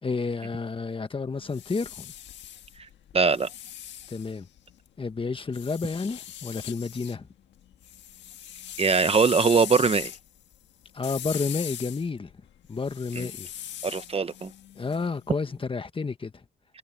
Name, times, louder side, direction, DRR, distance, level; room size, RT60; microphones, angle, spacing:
voice 1, 0.0-2.1 4.1-4.5 5.0-7.3 10.9-12.3 12.7-13.5 14.7-16.3, left 4 dB, 30° left, 1.4 m, -30 dB
sound 1, 1.3-4.9 5.5-7.2 7.5-15.4, left 11 dB, 85° left, 1.7 m, -40 dB
voice 2, 3.1-3.5 8.8-10.1 13.2-13.3 13.8-14.5, right 5 dB, 35° right, 0.9 m, -22 dB
cardioid pair, 90°, 18 cm